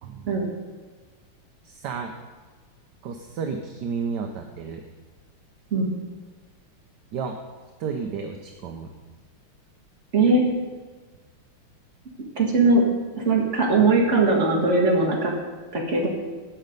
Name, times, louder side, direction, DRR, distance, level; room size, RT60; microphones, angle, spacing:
voice 1, 0.0-0.3 1.6-2.1 3.0-4.8 7.1-7.4 7.8-8.9, right 5 dB, 65° right, 4 dB, 1.2 m, -32 dB
voice 2, 10.1-10.4 12.4-12.8 13.2-15.3 15.7-16.1, right 3 dB, 35° right, -1 dB, 2.1 m, -20 dB
11.5 x 7.9 x 5.3 m, 1.4 s
omnidirectional pair, 2.3 m